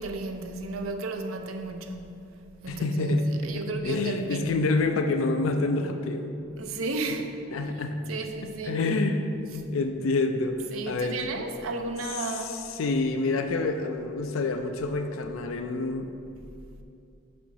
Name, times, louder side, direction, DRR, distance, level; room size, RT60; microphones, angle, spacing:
voice 1, 0.0-2.3 2.6-4.6 6.6-7.2 8.1-8.8 10.7-12.7, right 3 dB, 90° right, 5 dB, 0.6 m, -33 dB
voice 2, 2.7-3.3 3.5-6.3 7.5-8.0 8.4-11.4 12.2-16.1, left 3 dB, 85° left, 6 dB, 0.4 m, -28 dB
5.5 x 4.3 x 6.0 m, 2.6 s
head